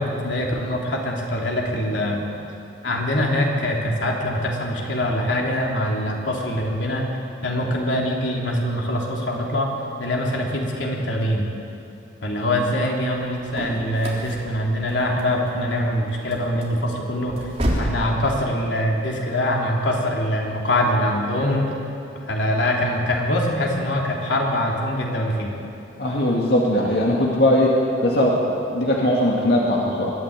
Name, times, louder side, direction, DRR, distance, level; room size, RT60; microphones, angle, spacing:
voice 1, 0.0-2.2 2.8-7.1 7.4-9.7 10.0-11.4 12.2-17.5 17.8-21.7 22.3-25.5, left 1 dB, 85° left, -1 dB, 3.3 m, -23 dB
sound 1, 13.3-18.1, equal, 35° right, 3.7 m, -30 dB
voice 2, 26.0-27.7 28.0-30.1, left 1 dB, 60° left, -3 dB, 2.2 m, -20 dB
22.5 x 13.5 x 8.8 m, 2.8 s
head